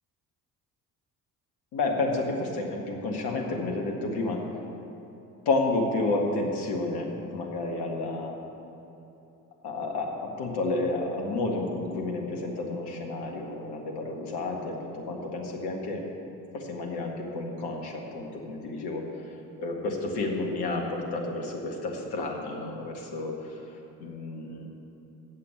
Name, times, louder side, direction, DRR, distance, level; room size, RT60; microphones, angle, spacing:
voice 1, 1.7-4.4 5.5-8.4 9.6-16.0 16.5-19.1 19.6-23.6 24.0-24.7, left 2 dB, 50° left, 0 dB, 1.8 m, -30 dB
8.6 x 7.6 x 8.4 m, 3.0 s
figure-of-eight pair, 45°, 49 cm